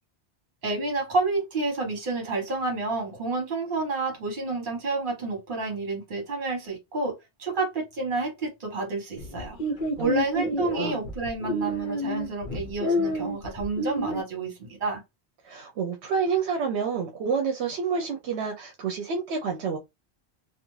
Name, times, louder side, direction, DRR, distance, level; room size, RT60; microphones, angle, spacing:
voice 1, 0.6-9.6 10.0-15.0, right 3 dB, 50° right, 1.2 m, -29 dB
sound 1, 9.2-14.2, left 1 dB, 55° left, 0.8 m, -29 dB
voice 2, 15.4-19.8, right 6 dB, 80° right, 0.8 m, -28 dB
2.4 x 2.3 x 3.0 m
omnidirectional pair, 1.1 m